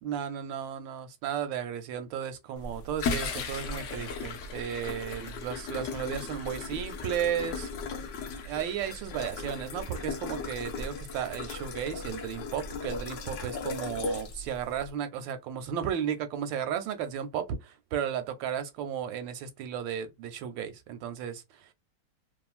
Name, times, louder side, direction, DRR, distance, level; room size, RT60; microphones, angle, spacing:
voice 1, 0.0-7.7 8.4-21.7, right 8 dB, 85° right, 1.3 m, -34 dB
sound 1, 2.6-14.9, left 4 dB, 80° left, 0.6 m, -37 dB
3.0 x 2.5 x 2.4 m
omnidirectional pair, 2.0 m